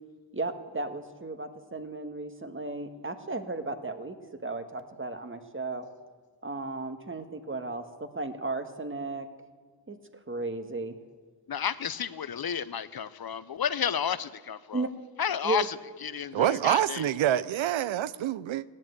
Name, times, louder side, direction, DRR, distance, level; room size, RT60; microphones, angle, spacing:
voice 1, 0.3-5.9 6.4-9.3 9.9-11.0 14.7-14.9 15.4-15.7, right 3 dB, 25° right, 1.6 m, -35 dB
voice 2, 11.5-14.9 15.2-15.8 16.0-17.1, left 8 dB, 55° left, 0.7 m, -31 dB
voice 3, 16.3-18.6, right 11 dB, 90° right, 0.6 m, -26 dB
16.0 x 10.5 x 8.3 m
cardioid pair, 55°, 45 cm